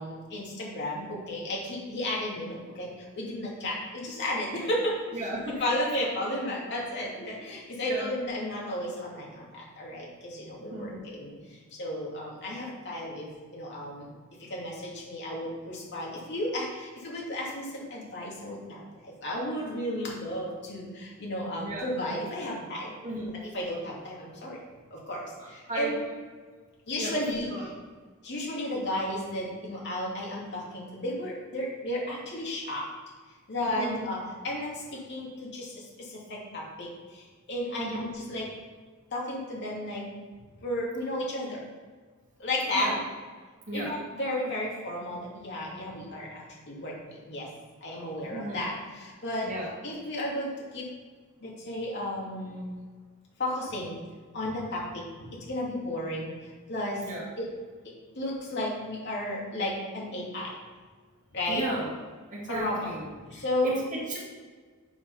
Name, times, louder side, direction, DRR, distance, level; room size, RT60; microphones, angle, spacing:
voice 1, 0.0-5.3 5.6-14.1 14.4-23.0 23.5-24.6 24.9-26.0 26.9-27.7 28.2-32.9 33.5-38.5 39.1-40.1 40.6-41.6 42.4-43.0 43.7-47.5 47.8-49.5 49.8-50.9 51.4-52.7 53.4-54.0 54.3-57.0 57.4-57.5 58.1-60.5 61.3-61.7 62.5-63.0 63.3-63.8, left 1 dB, 55° left, -4 dB, 2.5 m, -33 dB
voice 2, 5.1-6.0 7.8-8.2 10.7-11.0 21.6-21.9 23.0-23.4 25.4-26.0 26.9-27.7 33.7-34.1 37.8-38.0 42.7-42.9 43.7-44.0 48.2-48.7 49.4-49.7 57.0-57.2 61.5-61.9 62.3-63.0 63.6-64.2, right 1 dB, 40° right, -3 dB, 2.1 m, -35 dB
7.5 x 5.2 x 5.6 m, 1.5 s
head